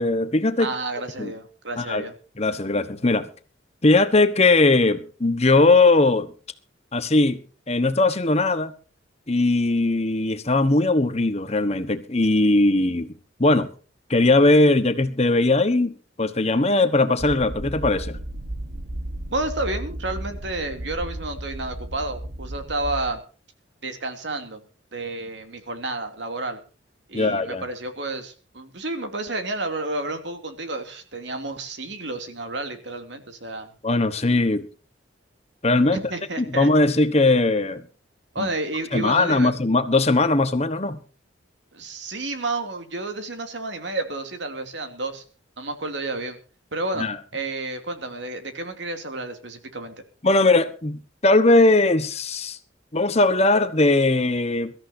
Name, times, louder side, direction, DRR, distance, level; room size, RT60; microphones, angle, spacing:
voice 1, 0.0-0.7 1.2-1.3 1.8-2.1 2.4-3.3 3.8-6.3 6.9-8.7 9.3-13.1 13.4-13.7 14.1-15.9 16.2-18.2 27.1-27.6 33.8-34.6 35.6-36.0 36.4-37.8 38.4-38.5 38.9-41.0 47.0-47.2 50.2-52.6 52.9-54.7, left 2 dB, 35° left, 1.2 m, -19 dB
voice 2, 0.6-2.1 19.3-23.2 23.8-24.6 24.9-26.6 27.1-33.7 35.9-36.7 38.3-39.5 41.7-45.2 45.6-46.4 46.7-47.1 47.3-49.9, right 2 dB, 65° right, 2.8 m, -31 dB
sound 1, 17.2-23.1, right 1 dB, 90° right, 1.7 m, -34 dB
24.0 x 14.0 x 2.8 m
head